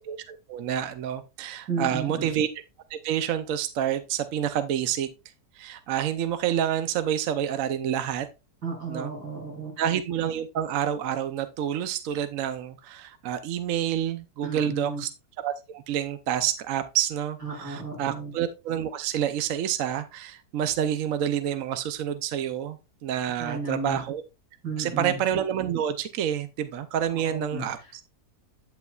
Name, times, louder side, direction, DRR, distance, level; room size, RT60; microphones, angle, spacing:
voice 1, 0.0-2.5 2.9-5.1 5.6-8.3 8.9-9.1 9.8-15.1 15.4-24.2 24.8-28.0, right 10 dB, 65° right, 0.9 m, -28 dB
voice 2, 1.7-2.3 8.6-9.9 14.4-15.0 17.4-18.3 23.4-24.0 24.6-25.2 27.1-28.0, right 3 dB, 80° right, 6.1 m, -34 dB
9.1 x 8.1 x 2.3 m
omnidirectional pair, 1.7 m